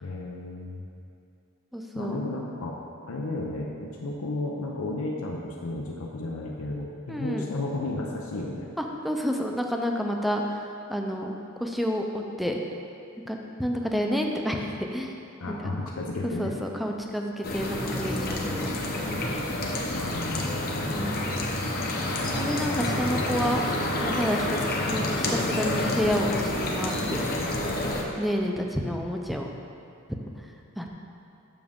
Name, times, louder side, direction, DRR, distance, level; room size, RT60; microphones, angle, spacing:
voice 1, 0.0-0.8 1.9-2.8 3.1-8.7 15.4-16.6 19.9-20.8, left 2 dB, 90° left, -1 dB, 0.6 m, -33 dB
voice 2, 1.7-2.2 7.1-7.5 8.8-10.6 10.9-12.6 13.3-15.1 15.5-15.6 16.4-19.0 20.8-21.2 22.3-23.7 24.0-27.5 28.2-29.5 30.8-30.9, equal, ahead, 1 dB, 0.5 m, -30 dB
sound 1, 17.4-28.0, left 1 dB, 45° left, 0.8 m, -28 dB
7.0 x 6.4 x 3.6 m, 2.6 s
head